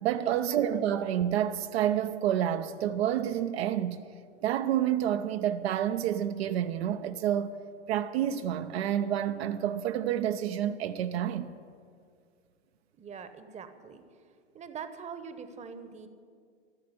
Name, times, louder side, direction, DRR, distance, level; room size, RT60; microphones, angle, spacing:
voice 1, 0.0-4.0 4.4-7.6 7.9-11.5, right 10 dB, 65° right, 0.8 m, -29 dB
voice 2, 13.0-14.0 14.5-16.1, right 6 dB, 20° right, 1.0 m, -43 dB
14.5 x 7.5 x 9.9 m
hypercardioid pair, 105°, 34 cm